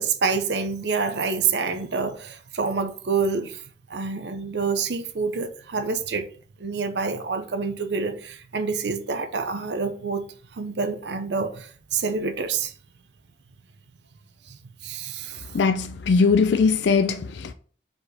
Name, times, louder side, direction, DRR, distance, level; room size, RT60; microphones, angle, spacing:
voice 1, 0.0-3.6 3.9-6.3 6.6-10.2 10.5-12.7 14.5-15.5, right 5 dB, 75° right, 0.7 m, -27 dB
voice 2, 15.5-17.5, left 4 dB, 75° left, 0.4 m, -20 dB
5.1 x 4.1 x 4.8 m
head